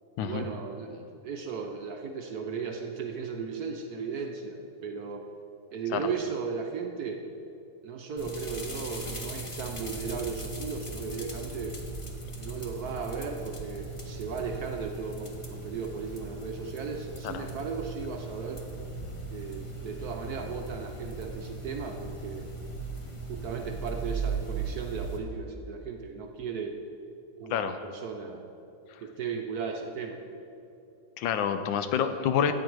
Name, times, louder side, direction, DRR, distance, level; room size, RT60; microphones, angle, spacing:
voice 1, 0.2-5.3 5.7-7.2 7.8-11.8 12.4-18.6 19.3-22.5 23.3-26.8 27.4-28.4 29.0-30.2, right 5 dB, 65° right, 3 dB, 1.0 m, -36 dB
sound 1, 8.2-25.2, right 3 dB, 30° left, 0.5 m, -38 dB
voice 2, 31.2-32.5, left 8 dB, 80° left, 9 dB, 1.3 m, -28 dB
13.0 x 8.8 x 4.6 m, 2.7 s
omnidirectional pair, 2.2 m